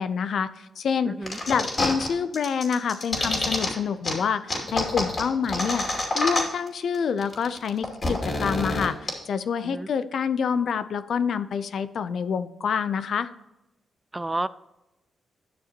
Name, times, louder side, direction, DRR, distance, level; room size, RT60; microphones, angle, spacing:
voice 1, 0.0-5.9 6.1-13.3, left 6 dB, 65° left, 0.5 m, -27 dB
voice 2, 1.1-1.4 9.6-9.9 14.1-14.5, right 2 dB, 15° right, 0.3 m, -30 dB
sound 1, 1.3-2.1 2.3-3.7 4.0-4.1 4.5-6.7 6.9-7.0 7.2-9.1, left 2 dB, 40° left, 2.5 m, -27 dB
11.5 x 6.5 x 2.9 m
cardioid pair, 95°, 0 cm